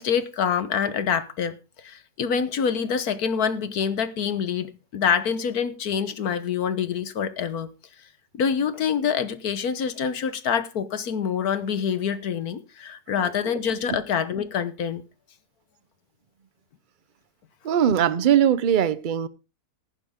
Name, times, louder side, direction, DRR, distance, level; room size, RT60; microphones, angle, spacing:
voice 1, 0.0-7.7 8.3-15.0, left 7 dB, 70° left, 1.6 m, -26 dB
voice 2, 17.6-19.3, right 9 dB, 45° right, 0.6 m, -21 dB
15.0 x 10.5 x 3.7 m
omnidirectional pair, 1.7 m